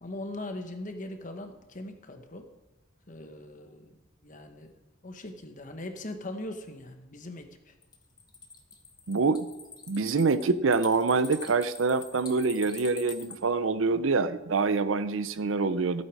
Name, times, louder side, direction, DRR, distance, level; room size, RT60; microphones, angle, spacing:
voice 1, 0.0-2.5 3.1-3.9 4.2-7.7, left 1 dB, 40° left, 6 dB, 1.2 m, -40 dB
sound 1, 7.8-13.4, left 5 dB, 20° left, 1.2 m, -45 dB
voice 2, 9.1-9.5 9.9-16.0, right 4 dB, 85° right, 14 dB, 0.6 m, -26 dB
15.0 x 8.5 x 4.8 m, 1.1 s
head